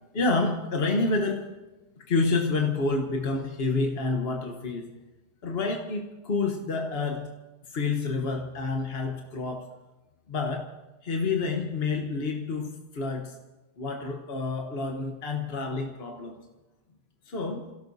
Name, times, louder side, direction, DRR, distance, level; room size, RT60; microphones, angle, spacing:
voice 1, 0.0-1.5 2.0-4.9 5.4-7.3 7.7-9.7 10.3-10.7 11.0-13.3 13.8-16.4 17.3-17.7, left 3 dB, 40° left, 2 dB, 0.9 m, -28 dB
28.5 x 17.0 x 2.7 m, 1.1 s
omnidirectional pair, 2.4 m